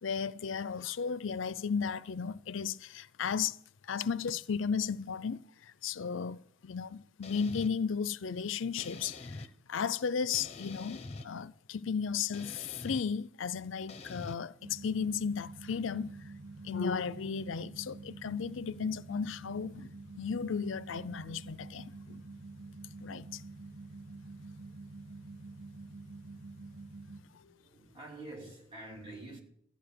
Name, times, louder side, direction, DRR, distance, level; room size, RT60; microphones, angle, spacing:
voice 1, 0.0-3.6 3.9-5.4 5.8-6.4 6.6-9.4 9.7-16.1 16.6-19.9 20.2-22.2 23.0-23.4, left 6 dB, 80° left, 0.5 m, -34 dB
sound 1, 7.2-7.7 8.8-9.5 10.3-11.3 12.3-13.1 13.9-14.3, left 3 dB, 30° left, 0.8 m, -45 dB
sound 2, 14.6-27.2, right 3 dB, 55° right, 1.9 m, -48 dB
voice 2, 27.1-29.4, right 2 dB, 25° right, 3.2 m, -48 dB
14.0 x 10.0 x 6.8 m
head